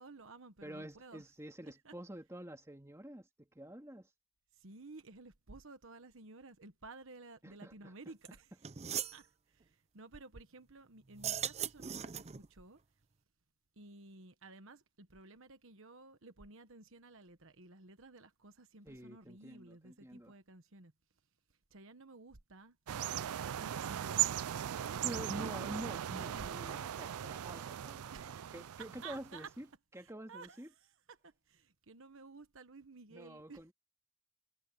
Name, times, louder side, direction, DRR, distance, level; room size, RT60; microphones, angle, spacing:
voice 1, 0.0-1.2 1.6-1.9 4.5-8.7 9.0-13.1 13.7-20.9 21.5-22.8 23.1-26.0 26.3-27.1 28.1-29.5 30.0-33.6, right 3 dB, 60° right, 1.3 m, -54 dB
voice 2, 0.6-4.1 7.4-7.9 18.8-20.3 25.0-29.6 29.9-30.7 33.1-33.7, right 1 dB, 15° right, 2.4 m, -48 dB
sound 1, 8.2-8.3 8.6-9.2 11.1-12.5, right 9 dB, 30° right, 0.5 m, -39 dB
sound 2, 22.9-29.5, right 11 dB, 85° right, 0.4 m, -38 dB
head